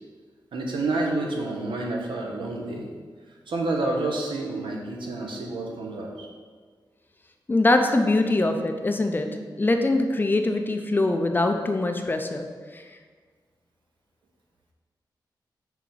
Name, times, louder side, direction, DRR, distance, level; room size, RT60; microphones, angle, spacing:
voice 1, 0.5-2.9 3.5-6.3, right 2 dB, 85° right, 0 dB, 1.0 m, -29 dB
voice 2, 7.5-12.5 12.7-12.8, left 2 dB, 25° left, 5 dB, 0.5 m, -23 dB
5.6 x 4.8 x 3.9 m, 1.6 s
wide cardioid pair, 115°, 8 cm